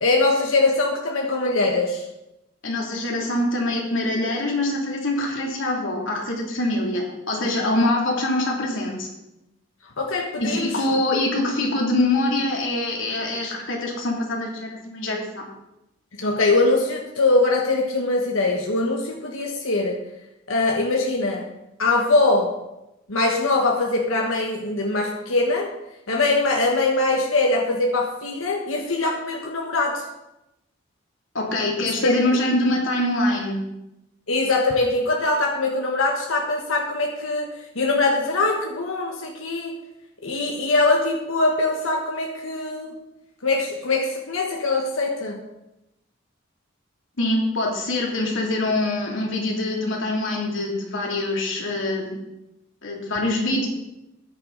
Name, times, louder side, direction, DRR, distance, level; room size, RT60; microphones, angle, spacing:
voice 1, 0.0-2.1 10.0-10.8 16.2-20.1 20.5-21.5 21.8-22.6 23.1-25.7 26.1-30.0 32.0-32.2 34.3-39.8 40.2-43.0 43.4-45.4, left 2 dB, 90° left, 1 dB, 1.4 m, -22 dB
voice 2, 2.6-9.1 10.4-15.5 31.3-33.7 47.2-52.2 52.8-53.7, left 1 dB, 70° left, -1 dB, 2.9 m, -24 dB
14.0 x 10.5 x 4.0 m, 0.90 s
head